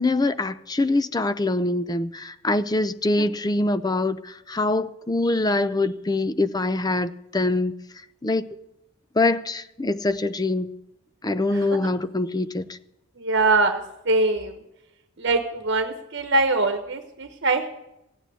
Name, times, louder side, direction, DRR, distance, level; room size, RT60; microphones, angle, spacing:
voice 1, 0.0-7.7 8.2-8.5 9.2-10.7 11.2-12.7, left 2 dB, 20° left, 0.6 m, -24 dB
voice 2, 11.5-11.9 13.2-14.6 15.2-17.7, right 2 dB, 60° right, 1.1 m, -23 dB
16.0 x 8.8 x 9.3 m
head